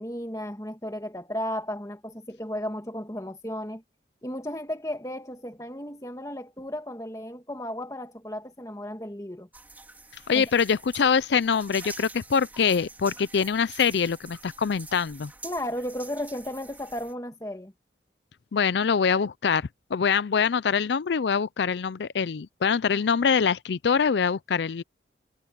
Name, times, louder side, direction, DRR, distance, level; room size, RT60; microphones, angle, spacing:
voice 1, 0.0-3.8 4.2-9.5 10.3-10.5 15.4-17.7, equal, 20° left, 1.8 m, -34 dB
sound 1, 9.5-17.1, right 3 dB, 10° right, 3.0 m, -46 dB
voice 2, 10.3-15.3 18.5-24.8, left 6 dB, 80° left, 0.5 m, -24 dB
head